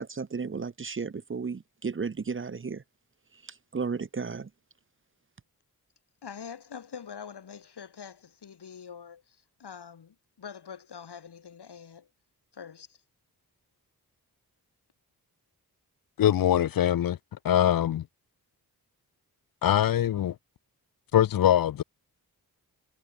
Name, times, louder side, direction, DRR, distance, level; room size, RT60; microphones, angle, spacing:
voice 1, 0.0-2.8 3.7-4.5, right 5 dB, 30° right, 0.7 m, -33 dB
voice 2, 6.2-12.1 12.5-13.0, left 7 dB, 80° left, 4.7 m, -45 dB
voice 3, 16.2-17.2 17.4-18.0 19.6-20.3 21.1-21.8, left 11 dB, 60° left, 0.5 m, -23 dB
cardioid pair, 60°, 39 cm